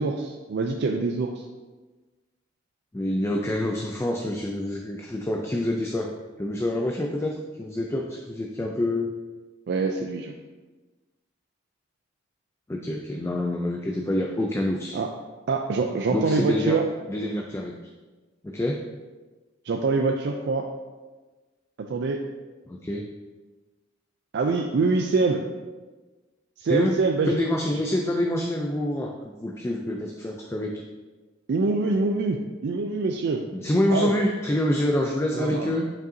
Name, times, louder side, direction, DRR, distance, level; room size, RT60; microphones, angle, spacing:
voice 1, 0.0-1.5 9.7-10.3 14.9-15.1 15.5-16.9 19.7-20.7 21.8-22.2 24.3-25.5 26.6-27.3 31.5-33.4 33.9-34.1 35.3-35.7, right 4 dB, 60° right, 3 dB, 0.4 m, -25 dB
voice 2, 2.9-6.1 6.4-9.1 12.7-15.0 16.1-16.8 17.1-17.8 18.4-18.8 22.7-23.1 26.6-27.0 27.3-30.8 33.5-35.9, left 1 dB, 15° left, 1 dB, 0.4 m, -26 dB
7.5 x 5.3 x 2.7 m, 1.3 s
head